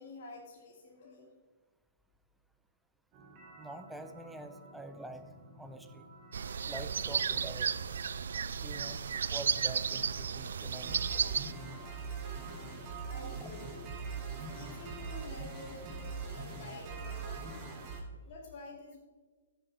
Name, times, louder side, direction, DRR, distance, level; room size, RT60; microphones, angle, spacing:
voice 1, 0.0-1.3 13.1-13.9 14.3-17.9 18.2-19.0, left 2 dB, 50° left, -2 dB, 2.4 m, -49 dB
sound 1, 3.1-18.0, right 4 dB, 30° right, 3.1 m, -44 dB
voice 2, 3.6-5.2 5.6-6.0 6.6-7.7 8.6-9.0 9.3-11.2, right 1 dB, 5° right, 6 dB, 0.7 m, -46 dB
sound 2, 6.3-11.5, right 7 dB, 80° right, 0.4 m, -33 dB
13.5 x 7.0 x 3.9 m, 1.4 s
hypercardioid pair, 145°, 0 cm